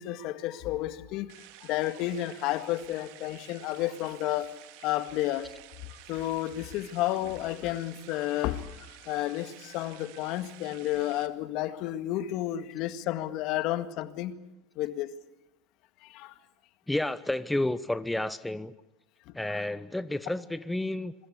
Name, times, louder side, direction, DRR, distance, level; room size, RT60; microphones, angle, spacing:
voice 1, 0.0-1.3 1.6-4.5 4.8-5.5 6.1-8.7 9.1-14.4 14.8-15.1 16.0-16.3, left 14 dB, 60° left, 1.9 m, -31 dB
sound 1, 1.3-11.3, right 15 dB, 70° right, 2.2 m, -52 dB
voice 2, 16.9-18.7 19.3-21.3, left 1 dB, 5° left, 1.0 m, -31 dB
27.0 x 23.0 x 8.4 m
hypercardioid pair, 95°, 0 cm